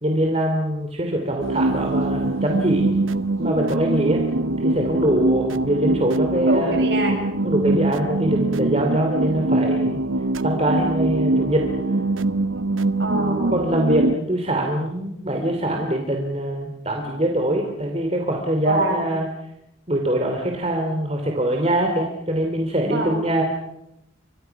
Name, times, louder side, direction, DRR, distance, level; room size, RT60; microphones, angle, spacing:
voice 1, 0.0-2.9 3.4-4.2 4.6-6.8 7.4-10.0 10.4-11.7 13.5-19.3 19.9-23.4, right 1 dB, 30° right, 2 dB, 3.0 m, -23 dB
sound 1, 1.4-14.2, right 2 dB, 90° right, 1.0 m, -23 dB
voice 2, 6.5-7.3 13.0-13.6 18.6-19.1 22.9-23.2, right 1 dB, 55° right, 3 dB, 7.5 m, -24 dB
29.5 x 26.0 x 5.9 m, 0.87 s
head